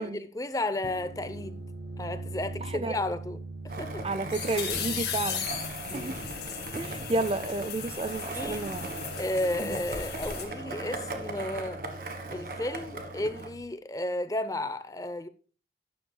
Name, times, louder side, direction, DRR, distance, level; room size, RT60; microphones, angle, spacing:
voice 1, 0.0-1.6 2.0-3.4 3.8-4.0 5.9-6.1 8.4-8.8 9.2-11.8 12.3-15.3, left 1 dB, 20° left, 0.6 m, -33 dB
sound 1, 0.7-13.6, right 3 dB, 80° right, 1.5 m, -43 dB
voice 2, 2.6-3.0 4.0-5.5 5.9-6.2 6.7-8.9 9.6-9.8, right 2 dB, 30° right, 0.4 m, -31 dB
sound 2, 3.7-10.4, left 8 dB, 70° left, 2.0 m, -37 dB
Skateboard, 3.7-13.5, right 2 dB, 55° right, 1.4 m, -39 dB
12.0 x 9.7 x 2.2 m
head